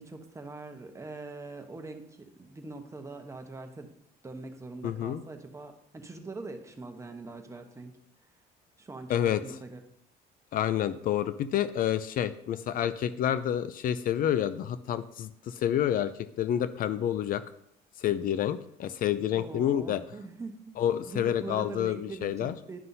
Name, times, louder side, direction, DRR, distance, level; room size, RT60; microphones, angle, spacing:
voice 1, 0.0-3.9 4.2-8.0 8.8-9.8 19.3-20.7 21.1-22.8, right 3 dB, 15° right, 5 dB, 1.0 m, -42 dB
voice 2, 4.8-5.2 9.1-9.4 10.5-16.1 16.4-17.4 18.0-20.0 20.8-22.5, left 10 dB, 55° left, 13 dB, 0.4 m, -28 dB
11.0 x 5.5 x 2.7 m, 0.73 s
cardioid pair, 110°, 17 cm